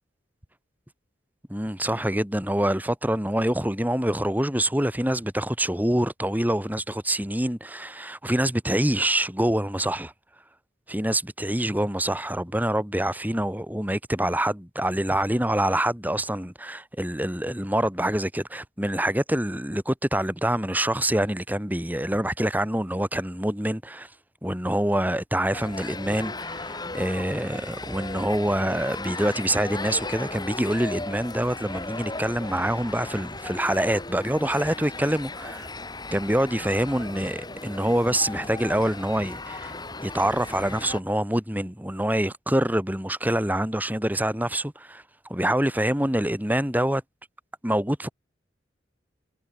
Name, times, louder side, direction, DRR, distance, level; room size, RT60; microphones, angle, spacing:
voice 1, 1.5-10.1 10.9-24.1 24.4-35.7 36.1-39.7 40.0-45.0 45.3-47.0 47.6-48.1, right 1 dB, 10° right, 4.2 m, -26 dB
sound 1, 25.5-41.0, left 2 dB, 20° left, 7.0 m, -36 dB
head